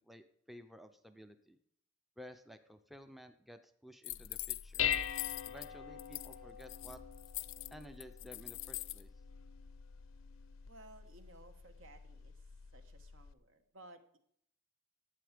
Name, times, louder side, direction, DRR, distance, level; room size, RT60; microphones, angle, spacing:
voice 1, 0.0-1.6 2.2-4.8 5.4-7.0 7.7-9.1, equal, ahead, 8 dB, 0.5 m, -54 dB
sound 1, 4.0-5.7 6.0-6.4 6.6-9.0, left 20 dB, 60° left, 0.3 m, -43 dB
Dishes pots and pans, 4.1-13.3, left 8 dB, 90° left, 0.7 m, -43 dB
voice 2, 10.6-12.3 12.7-14.2, right 2 dB, 70° right, 8 dB, 1.2 m, -58 dB
11.5 x 8.6 x 5.0 m, 0.68 s
head